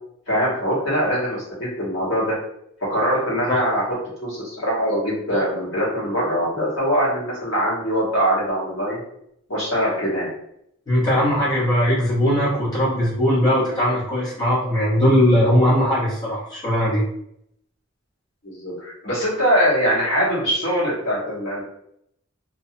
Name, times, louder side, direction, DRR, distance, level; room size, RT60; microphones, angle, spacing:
voice 1, 0.3-2.3 2.9-3.9 4.2-9.0 9.5-10.3 18.4-21.6, equal, 70° left, -7 dB, 1.4 m, -22 dB
voice 2, 10.9-17.0, equal, 20° left, -9 dB, 0.9 m, -19 dB
2.5 x 2.2 x 2.7 m, 0.73 s
head